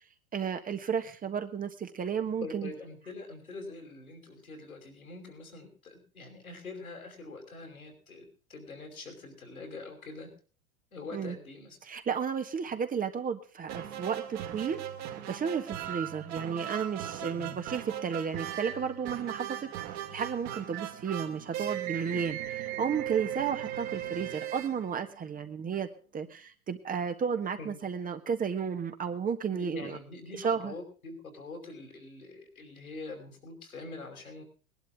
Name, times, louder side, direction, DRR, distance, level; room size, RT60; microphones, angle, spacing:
voice 1, 0.3-2.7 11.1-11.4 11.9-14.8 15.3-19.7 20.1-30.0 30.4-30.7, right 7 dB, 20° right, 7 dB, 1.5 m, -33 dB
voice 2, 2.4-10.3 10.9-11.8 17.3-17.6 27.6-27.8 29.5-34.4, left 3 dB, 80° left, 3 dB, 5.4 m, -44 dB
sound 1, 13.7-25.5, right 11 dB, 40° right, 2.5 m, -38 dB
20.5 x 11.5 x 3.7 m, 0.38 s
figure-of-eight pair, 90°, 42 cm